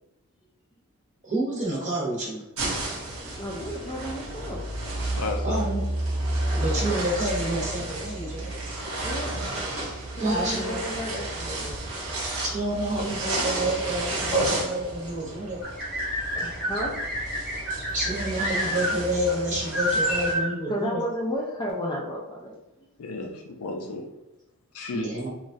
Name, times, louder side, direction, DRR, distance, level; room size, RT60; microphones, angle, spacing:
voice 1, 1.2-2.4 5.4-5.8 6.5-8.5 10.2-10.8 12.4-15.6 17.9-21.0 24.9-25.3, right 1 dB, 35° right, -4 dB, 0.8 m, -28 dB
sound 1, 2.6-20.3, right 1 dB, 80° right, 0.9 m, -32 dB
voice 2, 3.2-4.6 9.0-9.4 10.2-11.8 13.7-13.9 15.5-15.7 16.3-16.9 20.4-22.6, equal, 20° left, -3 dB, 0.3 m, -33 dB
voice 3, 5.2-5.6 13.4-13.7 14.3-14.5 23.0-24.0 24.7-25.1, left 3 dB, 80° left, 4 dB, 0.5 m, -32 dB
sound 2, 15.6-18.9 19.3-19.4 19.7-20.5, equal, ahead, 0.8 m, -29 dB
3.0 x 2.3 x 2.6 m, 0.97 s
head